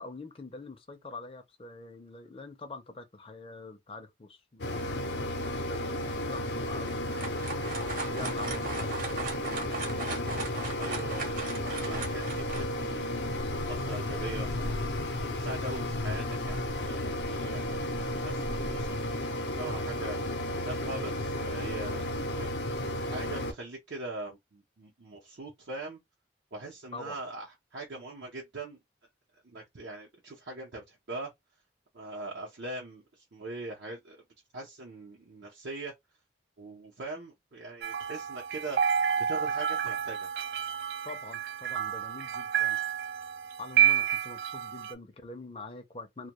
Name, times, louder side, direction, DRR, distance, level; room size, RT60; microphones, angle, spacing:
voice 1, 0.0-7.5 8.1-10.3 26.9-27.2 41.0-42.8 43.6-46.3, left 3 dB, 30° left, 0.4 m, -45 dB
Mechanisms, 4.6-23.5, left 1 dB, 80° left, 0.6 m, -33 dB
sound 1, 6.8-12.6, right 3 dB, 50° right, 0.7 m, -38 dB
voice 2, 10.8-13.2 13.7-19.1 19.5-22.5 23.0-26.0 26.5-27.5 27.7-28.8 29.4-31.3 31.9-34.2 34.5-35.9 36.6-38.8 39.2-40.3, right 2 dB, 85° right, 0.7 m, -41 dB
sound 2, 37.8-44.9, right 8 dB, 70° right, 0.3 m, -29 dB
2.2 x 2.2 x 2.9 m
head